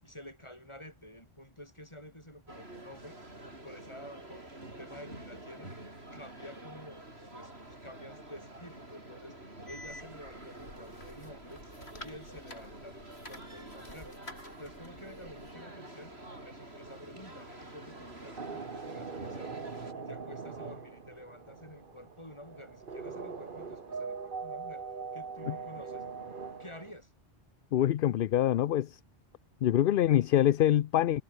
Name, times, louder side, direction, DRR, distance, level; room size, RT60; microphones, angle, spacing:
voice 1, 0.0-3.2 3.5-5.7 6.1-7.5 7.8-11.6 11.9-14.2 14.5-19.5 19.9-24.8 25.1-26.1 26.6-27.1, left 1 dB, 30° left, 8.1 m, -50 dB
sound 1, 2.5-19.9, right 1 dB, 85° right, 6.7 m, -48 dB
sound 2, 9.7-15.5, left 1 dB, 85° left, 8.4 m, -50 dB
sound 3, 17.3-26.9, right 5 dB, 55° right, 1.6 m, -42 dB
voice 2, 27.7-28.9 29.6-31.2, left 12 dB, 65° left, 0.7 m, -25 dB
omnidirectional pair, 1.0 m